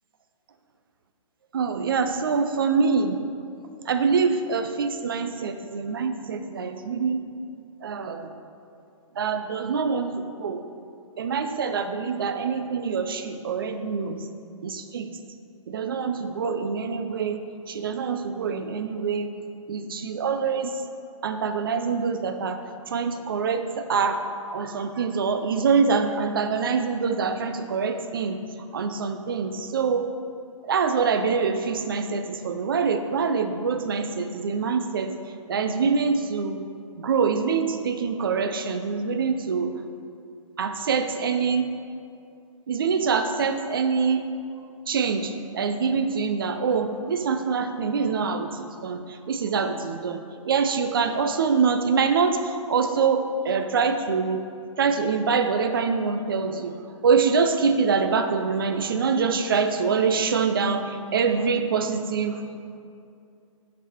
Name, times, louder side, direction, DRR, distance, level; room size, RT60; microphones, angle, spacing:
voice 1, 1.5-3.2 3.8-7.2 7.8-8.3 9.2-10.6 11.2-14.2 14.6-15.1 15.7-19.3 19.7-20.7 21.2-22.6 22.9-24.2 24.5-28.4 28.7-30.1 30.7-35.1 35.5-36.6 37.0-39.7 40.6-41.7 42.7-44.3 44.9-54.4 54.8-56.8 57.0-62.4, right 5 dB, 40° right, 8 dB, 0.4 m, -25 dB
9.7 x 4.1 x 4.4 m, 2.5 s
hypercardioid pair, 180°, 17 cm